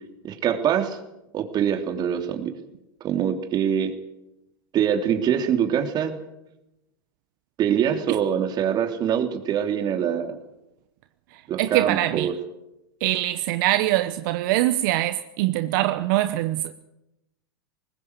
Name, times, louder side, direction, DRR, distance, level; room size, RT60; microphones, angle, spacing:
voice 1, 0.2-1.0 1.3-2.5 3.0-3.9 4.7-6.2 7.6-10.3 11.5-12.3, right 9 dB, 35° right, 3.2 m, -24 dB
voice 2, 11.6-12.3 13.0-16.7, right 15 dB, 60° right, 1.0 m, -23 dB
21.0 x 19.0 x 8.2 m
hypercardioid pair, 110°, 12 cm